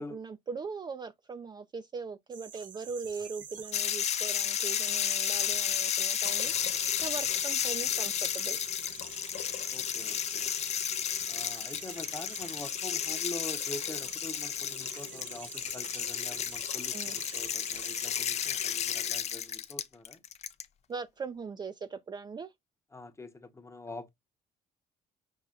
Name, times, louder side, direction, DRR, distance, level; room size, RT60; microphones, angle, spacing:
voice 1, 0.0-8.6 16.9-17.2 20.9-22.5, right 5 dB, 25° right, 0.4 m, -40 dB
sound 1, 2.3-18.1, right 6 dB, 50° right, 1.0 m, -47 dB
sound 2, 3.7-20.6, left 9 dB, 40° left, 0.5 m, -32 dB
sound 3, 6.2-19.2, left 8 dB, 80° left, 0.7 m, -51 dB
voice 2, 9.7-10.5 11.3-20.2 22.9-24.1, left 2 dB, 15° left, 0.8 m, -44 dB
5.5 x 2.2 x 3.6 m
cardioid pair, 110°, 17 cm